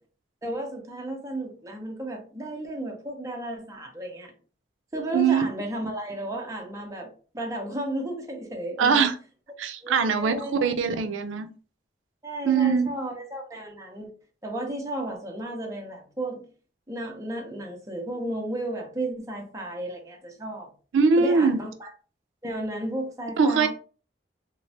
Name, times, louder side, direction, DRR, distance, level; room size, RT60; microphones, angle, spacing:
voice 1, 0.4-4.3 4.9-9.0 9.8-10.8 12.2-14.1 14.4-16.4 16.9-20.7 21.2-21.9 22.4-23.7, right 1 dB, 15° right, 0.5 m, -33 dB
voice 2, 5.1-5.4 8.8-9.1 9.6-11.5 12.4-12.9 20.9-21.6 23.4-23.7, right 5 dB, 90° right, 0.4 m, -22 dB
3.1 x 2.0 x 2.7 m
head